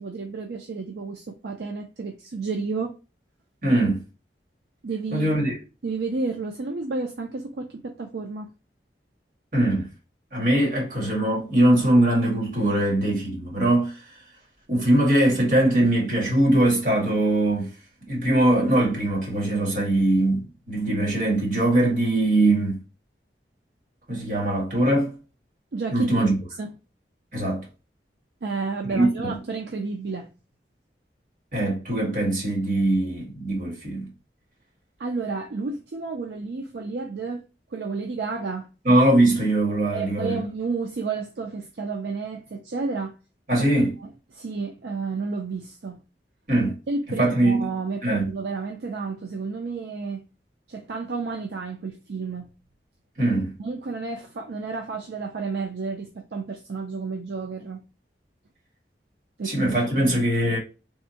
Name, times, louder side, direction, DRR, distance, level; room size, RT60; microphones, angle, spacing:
voice 1, 0.0-2.9 4.8-5.3 5.8-8.5 25.7-26.1 26.6-26.7 28.4-30.3 35.0-37.4 37.7-38.7 39.9-43.1 44.3-46.0 46.9-50.2 50.7-52.5 53.6-57.8 59.4-59.6 60.0-60.2, right 4 dB, 70° right, 0.5 m, -31 dB
voice 2, 3.6-4.0 5.1-5.6 9.5-9.9 10.3-14.0 14.7-17.7 18.0-22.8 24.1-25.2 25.9-26.4 27.3-27.6 28.8-29.3 31.5-34.1 38.8-40.4 43.5-44.0 46.5-46.7 47.1-47.6 48.0-48.3 53.2-53.5 59.4-60.6, right 1 dB, 50° right, 1.6 m, -21 dB
3.5 x 2.1 x 2.7 m
head